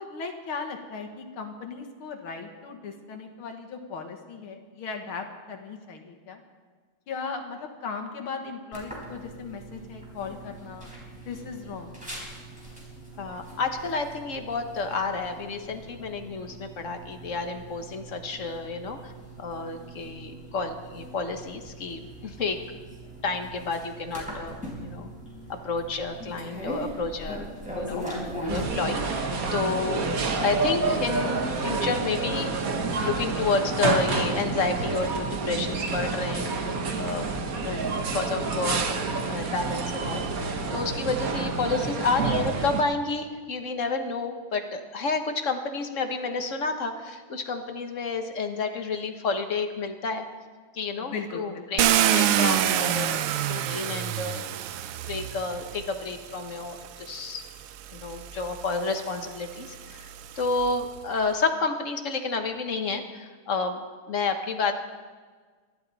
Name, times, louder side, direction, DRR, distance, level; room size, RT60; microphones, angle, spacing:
voice 1, 0.0-6.4 7.1-12.0 37.6-38.0 38.3-38.4 51.0-52.0, left 5 dB, 75° left, 4 dB, 2.3 m, -37 dB
sound 1, 8.7-28.6, right 1 dB, 5° right, 4.5 m, -40 dB
voice 2, 13.2-19.1 19.4-22.6 23.2-24.6 24.8-25.1 25.5-27.4 27.8-28.1 28.5-30.0 30.3-32.7 33.0-37.3 38.1-50.2 50.7-54.4 55.1-57.4 57.9-60.1 60.4-63.8 64.1-64.8, left 4 dB, 40° left, 6 dB, 1.4 m, -30 dB
sound 2, 28.5-42.8, right 3 dB, 50° right, 1.4 m, -28 dB
Car, 51.8-55.9 56.8-56.9 57.5-60.8, right 11 dB, 85° right, 1.6 m, -27 dB
27.0 x 12.0 x 4.2 m, 1.5 s
omnidirectional pair, 2.4 m